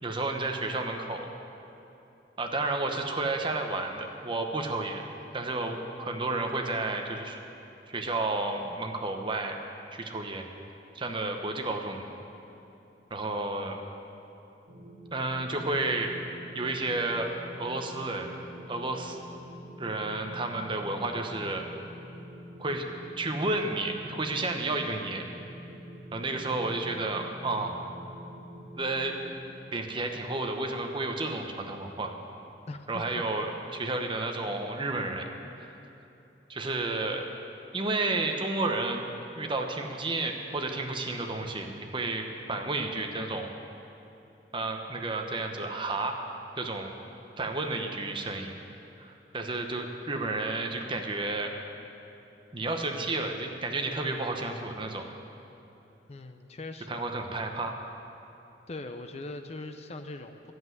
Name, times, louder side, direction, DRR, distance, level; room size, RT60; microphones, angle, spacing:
voice 1, 0.0-1.3 2.4-5.0 5.3-7.4 7.9-9.6 9.9-10.5 10.9-12.1 13.1-13.8 15.1-16.1 16.5-17.3 17.6-18.3 18.7-19.2 19.8-21.6 22.6-22.9 23.2-25.2 26.1-27.8 28.7-29.2 29.7-32.2 32.9-35.2 35.6-35.8 36.5-37.3 37.7-39.0 39.3-43.5 44.5-46.2 46.6-46.9 47.4-48.5 49.0-51.5 52.5-55.1 56.9-57.7, right 2 dB, 30° right, 4 dB, 0.9 m, -31 dB
sound 1, 14.7-29.3, equal, 75° right, 1.7 m, -46 dB
voice 2, 56.1-57.0 58.7-60.5, left 2 dB, 40° left, 8 dB, 0.5 m, -40 dB
11.0 x 7.9 x 9.3 m, 2.9 s
head